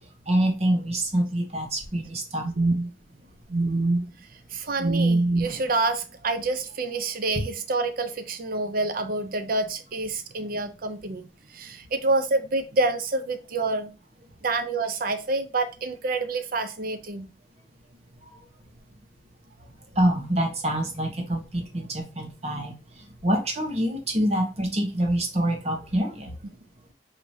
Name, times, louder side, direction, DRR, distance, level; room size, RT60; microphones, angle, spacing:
voice 1, 0.3-2.5 18.2-18.3 20.0-22.7 23.2-26.3, right 1 dB, 35° right, 1.0 m, -26 dB
voice 2, 2.4-2.9 3.5-4.1 4.5-13.9 14.4-17.3, right 2 dB, 50° right, 0.6 m, -26 dB
4.7 x 2.8 x 2.7 m
head